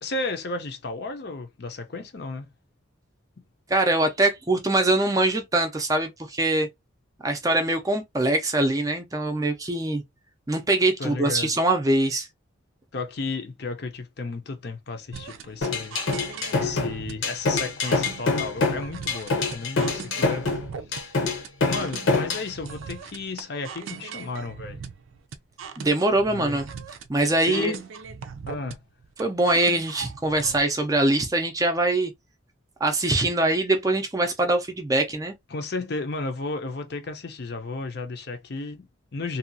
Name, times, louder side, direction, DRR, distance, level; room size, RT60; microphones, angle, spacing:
voice 1, 0.0-2.5 11.0-11.5 12.9-20.6 21.6-24.8 26.3-26.6 27.5-27.8 28.5-28.8 35.5-39.4, left 3 dB, 50° left, 0.6 m, -33 dB
voice 2, 3.7-6.7 7.2-10.0 10.5-12.3 25.8-26.7 27.1-27.8 29.2-32.1 32.8-35.3, right 2 dB, 15° right, 0.4 m, -23 dB
sound 1, 15.1-30.6, right 6 dB, 80° right, 0.4 m, -40 dB
sound 2, 15.6-22.5, left 3 dB, 75° left, 0.9 m, -25 dB
2.7 x 2.3 x 2.6 m
head